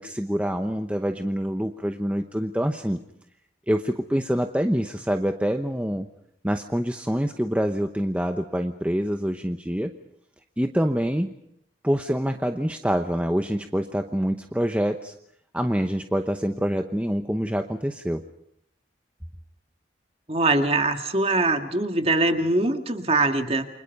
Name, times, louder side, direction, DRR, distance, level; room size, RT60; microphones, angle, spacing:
voice 1, 0.0-3.0 3.7-6.1 6.4-9.9 10.6-11.3 11.8-15.1 15.5-18.2, equal, 5° right, 5 dB, 0.9 m, -26 dB
voice 2, 20.3-23.7, right 2 dB, 30° right, 6 dB, 2.0 m, -22 dB
29.5 x 25.5 x 5.4 m, 0.74 s
head